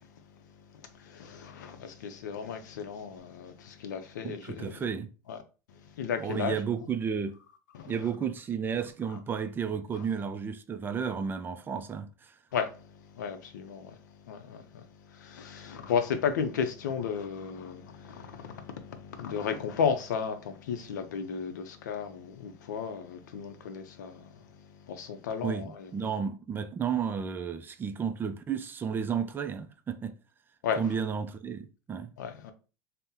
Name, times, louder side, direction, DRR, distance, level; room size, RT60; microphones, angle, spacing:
voice 1, 0.0-4.8 5.3-5.4 5.7-6.8 7.7-8.1 9.1-9.2 9.9-10.1 12.5-26.1 30.6-30.8 32.2-32.5, left 6 dB, 85° left, 0.5 m, -35 dB
voice 2, 4.2-5.1 6.2-7.4 7.9-12.4 25.4-30.2 30.8-32.1, right 7 dB, 20° right, 0.3 m, -32 dB
2.7 x 2.1 x 3.6 m
supercardioid pair, 110°, 9 cm